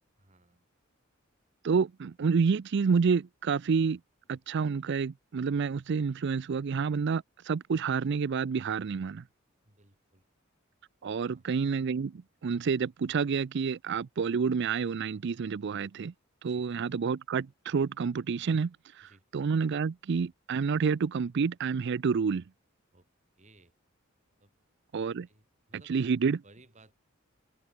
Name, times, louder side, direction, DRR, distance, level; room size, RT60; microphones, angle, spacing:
voice 1, 0.2-0.6 9.6-10.2 11.2-11.5 16.4-16.6 19.0-19.2 22.9-23.1 23.4-23.7 24.4-24.5 25.3-26.1 26.4-26.9, right 2 dB, 35° right, 4.3 m, -60 dB
voice 2, 1.6-4.0 4.3-9.2 11.0-16.1 16.4-22.4 24.9-25.3 25.9-26.4, right 5 dB, 55° right, 0.4 m, -29 dB
open air
head